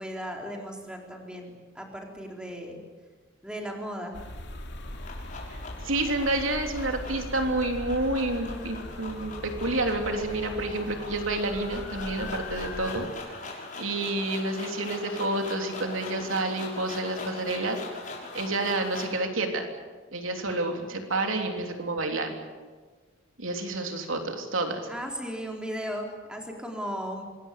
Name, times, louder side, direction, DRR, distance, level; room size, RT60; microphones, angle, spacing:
voice 1, 0.0-2.8 3.4-4.2 24.9-27.2, equal, 5° right, 1 dB, 4.0 m, -36 dB
sound 1, 4.1-13.1, left 1 dB, 60° left, 2.9 m, -40 dB
sound 2, 4.7-19.2, left 3 dB, 40° left, 6.3 m, -42 dB
voice 2, 5.8-13.1 13.5-17.8 18.3-19.7 20.1-22.4 23.4-24.9, right 2 dB, 80° right, 4 dB, 3.4 m, -29 dB
25.5 x 21.0 x 8.4 m, 1.4 s
head